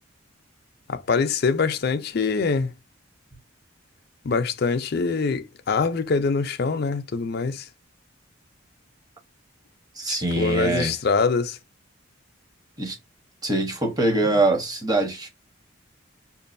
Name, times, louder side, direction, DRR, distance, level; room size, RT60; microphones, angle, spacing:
voice 1, 0.9-2.7 4.2-7.6 10.1-11.6 14.2-14.4, left 4 dB, 50° left, 0.4 m, -24 dB
voice 2, 10.0-10.9 12.8-13.0 13.4-15.3, right 2 dB, 20° right, 0.8 m, -23 dB
5.3 x 2.4 x 2.5 m
head